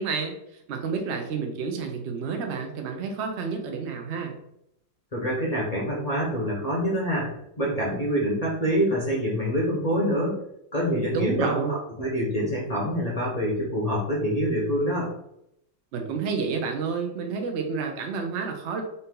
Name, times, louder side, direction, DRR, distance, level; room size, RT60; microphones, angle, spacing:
voice 1, 0.0-4.4 11.1-11.7 15.9-18.8, right 5 dB, 85° right, 3 dB, 0.6 m, -30 dB
voice 2, 5.1-10.4 10.7-15.1, equal, 40° left, -4 dB, 0.5 m, -26 dB
3.9 x 2.8 x 3.7 m, 0.78 s
omnidirectional pair, 2.2 m